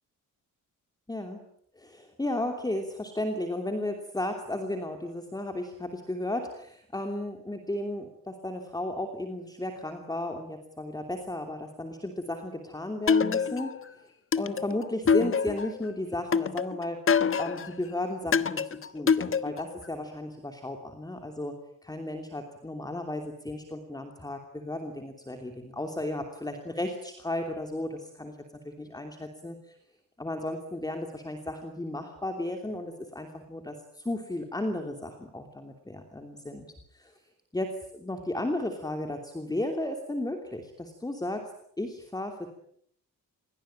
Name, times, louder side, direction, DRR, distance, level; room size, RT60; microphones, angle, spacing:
voice 1, 1.1-1.4 1.7-14.1 14.4-17.0 17.4-18.6 18.9-21.5 21.8-28.4 28.6-29.8 30.2-36.7 36.9-37.1 37.5-41.5 41.8-42.5, left 1 dB, 10° left, 4 dB, 3.0 m, -34 dB
sound 1, 13.1-13.8 14.3-15.8 16.3-17.7 18.3-19.8, left 6 dB, 40° left, 1.2 m, -25 dB
29.0 x 22.0 x 8.9 m, 0.69 s
wide cardioid pair, 150°, 33 cm